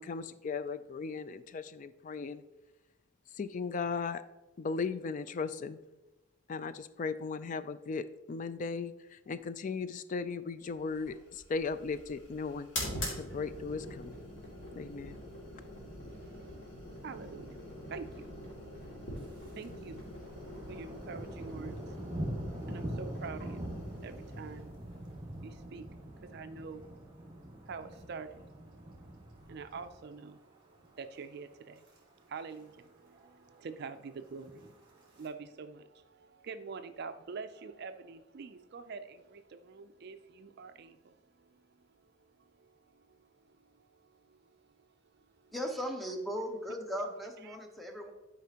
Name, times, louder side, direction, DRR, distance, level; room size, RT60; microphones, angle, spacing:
voice 1, 0.0-2.4 3.3-4.2 4.6-5.8 6.5-12.7 13.2-14.2 14.7-15.2, left 4 dB, 40° left, 13 dB, 0.3 m, -37 dB
sound 1, 10.9-26.2, equal, 60° left, 2.3 m, -45 dB
voice 2, 16.1-45.5 47.4-47.6, right 5 dB, 50° right, 9 dB, 0.4 m, -48 dB
Thunder, 19.2-19.7 20.0-30.3 30.7-31.1 31.5-32.0 32.2-32.3 32.5-32.6 33.0-33.6 34.3-35.3, right 1 dB, 20° right, 1.9 m, -43 dB
voice 3, 45.5-48.1, equal, ahead, 2 dB, 0.8 m, -37 dB
11.5 x 5.0 x 2.9 m, 1.1 s
head